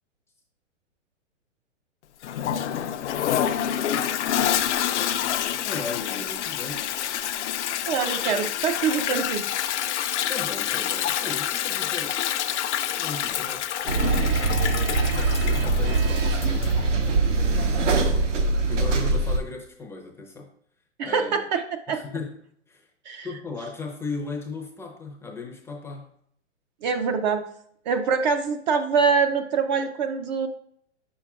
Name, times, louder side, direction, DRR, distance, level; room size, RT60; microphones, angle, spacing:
Toilet flush, 2.2-16.8, left 10 dB, 65° left, 0.6 m, -27 dB
voice 1, 5.7-6.9 10.3-12.2 12.9-14.1 15.1-16.7 18.7-20.5 21.0-21.4 21.9-22.4 22.7-22.9 23.2-26.1, left 3 dB, 5° left, 1 dB, 0.5 m, -36 dB
voice 2, 7.8-9.4 18.0-18.2 21.0-21.6 21.9-22.0 23.1-23.3 26.8-27.4 27.9-30.5, right 5 dB, 40° right, 6 dB, 0.5 m, -24 dB
sound 1, 13.9-19.4, right 3 dB, 75° right, 1.1 m, -22 dB
6.5 x 6.1 x 2.3 m, 0.67 s
hypercardioid pair, 125°, 37 cm